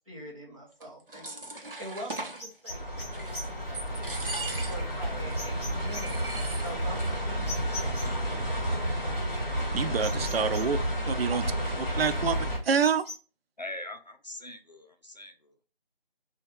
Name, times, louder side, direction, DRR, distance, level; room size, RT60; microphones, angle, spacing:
voice 1, 0.1-4.1 4.5-6.1 6.6-8.0, right 1 dB, 35° right, 0.8 m, -44 dB
sound 1, 0.8-2.4 3.0-3.5 3.7-5.0 5.3-5.4 5.8-7.2 7.4-7.5 7.8-8.3, right 2 dB, 65° right, 0.8 m, -39 dB
sound 2, 2.1-8.3 8.8-10.8 11.2-13.2, left 2 dB, 5° right, 1.3 m, -45 dB
sound 3, 2.7-12.6, equal, 20° left, 1.3 m, -31 dB
voice 2, 9.7-10.8 11.1-11.4 11.8-12.4 12.6-13.1, right 6 dB, 90° right, 0.5 m, -26 dB
voice 3, 13.6-15.3, left 1 dB, 50° left, 0.4 m, -41 dB
2.6 x 2.3 x 3.1 m
figure-of-eight pair, 180°, 29 cm